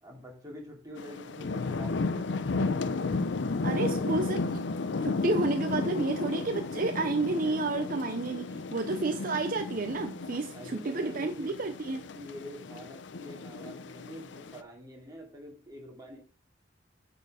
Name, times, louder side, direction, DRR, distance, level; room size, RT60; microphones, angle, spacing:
voice 1, 0.0-2.4 10.5-11.5 12.1-16.2, equal, 20° right, 2.7 m, -46 dB
sound 1, 1.0-14.6, left 3 dB, 70° left, 0.5 m, -33 dB
voice 2, 3.6-4.5 5.0-12.1, right 3 dB, 50° right, 0.6 m, -30 dB
9.3 x 4.4 x 4.9 m
head